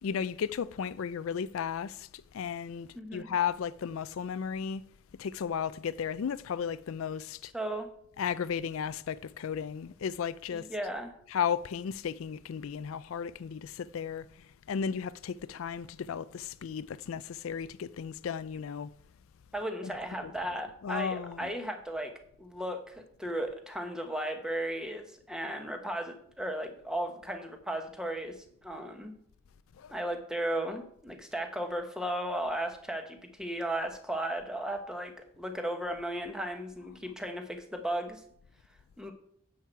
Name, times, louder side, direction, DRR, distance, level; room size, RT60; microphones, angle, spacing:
voice 1, 0.0-4.8 5.2-7.5 8.2-10.7 11.3-18.9 19.8-20.0 20.2-20.3 20.8-21.5 29.8-29.9, left 7 dB, 75° left, 0.4 m, -34 dB
voice 2, 2.9-3.3 7.5-7.9 10.5-11.1 19.5-22.1 22.4-28.4 28.6-29.1 29.9-38.2 39.0-39.1, right 1 dB, 5° right, 1.1 m, -35 dB
10.5 x 7.6 x 4.5 m
head